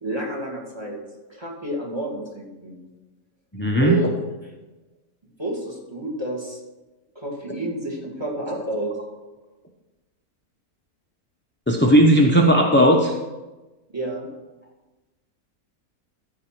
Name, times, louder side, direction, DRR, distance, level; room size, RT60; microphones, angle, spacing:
voice 1, 0.0-1.0 1.3-2.8 3.8-4.1 5.4-6.6 7.1-8.9 13.9-14.3, right 1 dB, 15° right, -1 dB, 2.3 m, -29 dB
voice 2, 3.5-4.0 11.7-13.1, right 1 dB, 10° left, 1 dB, 0.5 m, -16 dB
14.0 x 4.9 x 6.0 m, 1.1 s
omnidirectional pair, 1.6 m